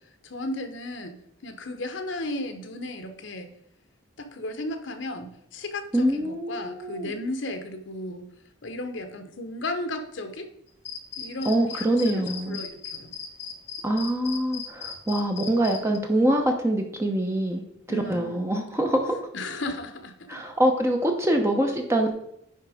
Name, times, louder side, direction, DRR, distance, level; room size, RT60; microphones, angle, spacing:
voice 1, 0.2-3.5 4.2-8.3 8.6-10.5 11.2-13.1 17.9-18.5 19.3-20.3, left 1 dB, 65° left, 7 dB, 0.9 m, -34 dB
voice 2, 5.9-7.1 11.4-12.6 13.8-17.6 17.9-19.1 20.3-22.1, right 1 dB, 15° right, 3 dB, 0.9 m, -24 dB
sound 1, 10.8-16.0, left 7 dB, 30° left, 1.4 m, -37 dB
10.0 x 3.6 x 4.9 m, 0.75 s
head